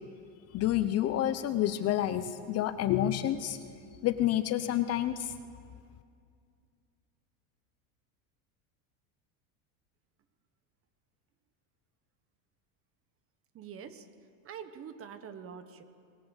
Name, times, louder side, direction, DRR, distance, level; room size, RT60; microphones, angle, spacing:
voice 1, 0.5-3.6 4.0-5.3, left 12 dB, 35° left, 11 dB, 0.9 m, -29 dB
voice 2, 13.5-14.1 14.4-15.8, right 7 dB, 30° right, 10 dB, 1.5 m, -45 dB
25.5 x 21.5 x 7.3 m, 2.3 s
supercardioid pair, 150°, 43 cm